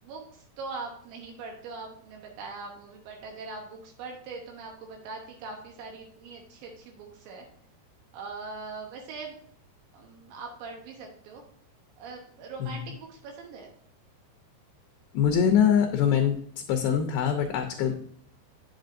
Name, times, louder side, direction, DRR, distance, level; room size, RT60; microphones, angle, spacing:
voice 1, 0.0-7.5 8.1-9.4 9.9-11.4 12.0-13.7, right 4 dB, 85° right, 1 dB, 3.4 m, -41 dB
voice 2, 15.1-16.4 16.7-17.9, left 8 dB, 80° left, 4 dB, 2.3 m, -23 dB
8.2 x 7.5 x 2.6 m, 0.64 s
omnidirectional pair, 5.0 m